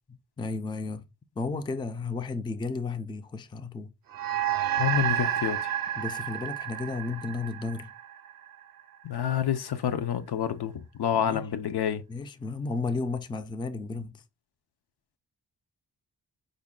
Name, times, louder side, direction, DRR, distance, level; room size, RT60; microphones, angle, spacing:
voice 1, 0.4-1.0 1.4-3.9 6.0-7.9 11.1-11.5 12.1-14.2, left 3 dB, 10° left, 0.3 m, -33 dB
sound 1, 4.1-8.8, right 11 dB, 60° right, 0.5 m, -30 dB
voice 2, 4.8-5.7 9.0-12.0, left 9 dB, 70° left, 0.6 m, -28 dB
5.1 x 2.1 x 3.7 m
wide cardioid pair, 95°, 41 cm